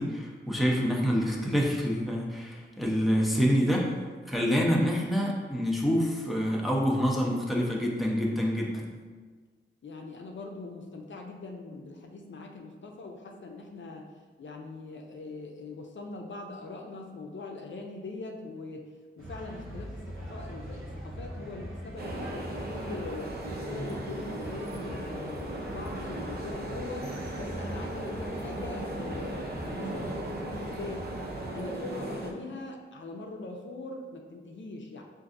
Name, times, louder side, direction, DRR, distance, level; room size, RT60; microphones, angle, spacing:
voice 1, 0.0-3.9 4.3-8.9, equal, ahead, -3 dB, 0.6 m, -27 dB
voice 2, 9.8-14.1 14.4-18.9 19.2-23.3 23.6-25.4 25.7-31.1 31.5-35.0, left 3 dB, 65° left, 1 dB, 0.5 m, -41 dB
sound 1, 19.2-31.5, equal, 80° right, 0.8 m, -42 dB
sound 2, 22.0-32.3, right 1 dB, 50° right, 0.6 m, -37 dB
5.9 x 2.5 x 2.5 m, 1.4 s
wide cardioid pair, 100°, 21 cm